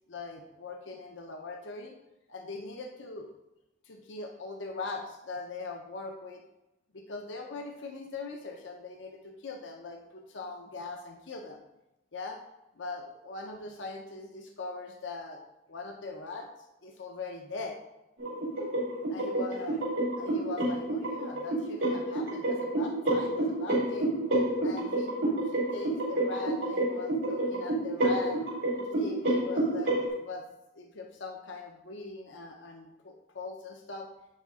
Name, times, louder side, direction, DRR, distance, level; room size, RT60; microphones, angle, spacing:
voice 1, 0.1-2.0 2.3-3.3 3.9-6.4 6.9-11.6 12.1-12.4 12.8-15.4 15.7-16.5 16.8-17.8 19.1-19.8 20.2-24.1 24.6-25.1 25.5-28.4 28.8-30.4 30.8-34.1, left 3 dB, 70° left, 2 dB, 0.7 m, -41 dB
sound 1, 18.2-30.1, right 1 dB, 80° right, 2.4 m, -29 dB
9.8 x 3.6 x 3.6 m, 0.92 s
head